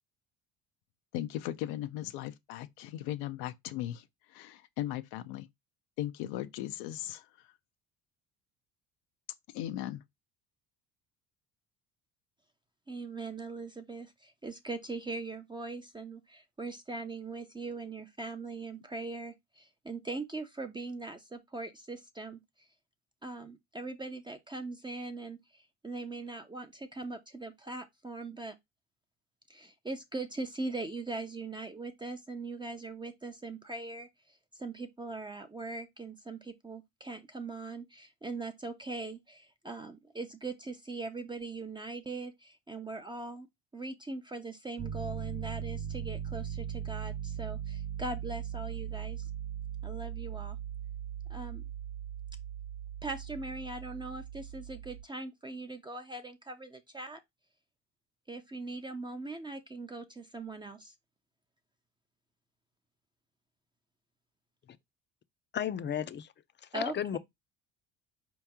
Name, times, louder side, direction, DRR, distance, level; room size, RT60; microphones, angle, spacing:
voice 1, 1.1-4.0 4.3-5.5 6.0-7.3 9.5-10.0, left 13 dB, 85° left, 0.6 m, -37 dB
voice 2, 12.9-22.4 23.2-28.5 29.5-43.5 43.7-49.3 49.8-50.6 51.3-51.6 53.0-57.2 58.3-60.9 66.7-66.9, right 3 dB, 15° right, 0.6 m, -41 dB
Piano, 44.8-55.0, right 9 dB, 35° right, 1.2 m, -39 dB
voice 3, 65.5-66.3 66.7-67.2, left 9 dB, 30° left, 0.5 m, -33 dB
4.5 x 3.0 x 3.5 m
supercardioid pair, 95°, 36 cm